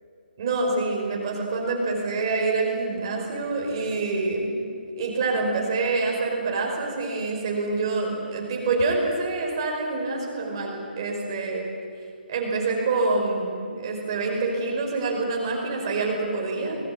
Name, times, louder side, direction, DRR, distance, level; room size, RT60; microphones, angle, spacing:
voice 1, 0.4-4.5 5.0-11.7 12.3-16.8, right 3 dB, 25° right, 0 dB, 5.3 m, -26 dB
24.5 x 21.0 x 8.7 m, 2.3 s
hypercardioid pair, 180°, 6 cm